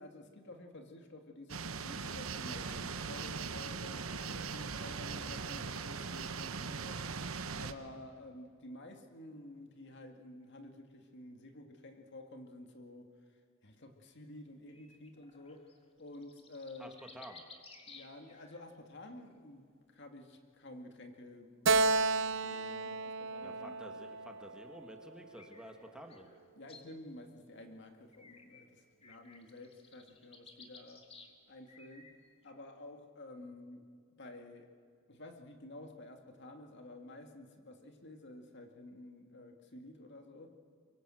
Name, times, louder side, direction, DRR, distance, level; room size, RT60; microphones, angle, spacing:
voice 1, 0.0-7.0 7.5-13.1 13.6-15.7 16.0-17.0 17.9-23.7 26.6-31.0 31.5-32.1 32.4-33.9 34.2-34.7 35.1-40.5, left 1 dB, 55° left, 5 dB, 2.3 m, -51 dB
sound 1, 1.5-7.7, right 5 dB, 80° right, 1.1 m, -40 dB
sound 2, 14.7-18.6 19.1-19.3 21.8-23.5 25.1-26.8 28.1-28.7 29.0-31.3 31.7-32.5, left 4 dB, 30° left, 2.2 m, -58 dB
voice 2, 16.8-17.4 23.4-26.3, equal, 5° right, 3 dB, 1.6 m, -51 dB
Keyboard (musical), 21.6-25.1, right 3 dB, 65° right, 0.7 m, -32 dB
23.5 x 23.5 x 7.8 m, 2.1 s
head